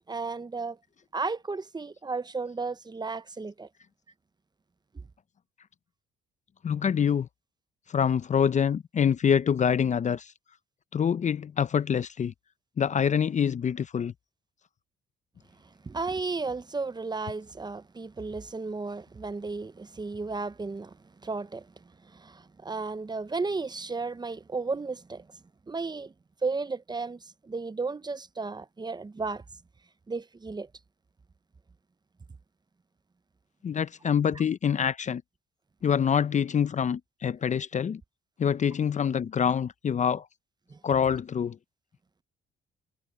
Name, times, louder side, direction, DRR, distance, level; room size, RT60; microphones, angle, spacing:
voice 1, 0.1-0.8 1.1-3.7 15.8-21.0 21.2-21.7 22.0-25.3 25.7-26.1 26.4-29.4 30.1-30.7 40.7-40.8, right 4 dB, 20° right, 0.7 m, -34 dB
voice 2, 6.6-7.3 7.9-10.3 10.9-12.3 12.8-14.1 33.6-35.2 35.8-38.0 38.4-40.3 40.8-41.6, left 7 dB, 40° left, 0.5 m, -25 dB
cardioid pair, 90°, 20 cm